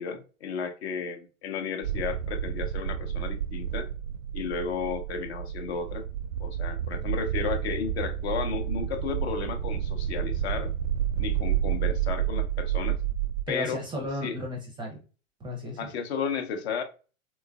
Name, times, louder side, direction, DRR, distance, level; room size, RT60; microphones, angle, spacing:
voice 1, 0.0-3.9 4.3-6.1 6.4-10.7 11.2-13.0 13.5-13.8 14.2-14.3 15.8-16.8, left 6 dB, 50° left, 0.7 m, -33 dB
sound 1, 1.8-13.4, right 10 dB, 75° right, 0.5 m, -30 dB
voice 2, 13.5-15.0 15.4-15.9, left 1 dB, 10° right, 0.5 m, -34 dB
3.1 x 3.0 x 2.3 m
figure-of-eight pair, 95°, 40 cm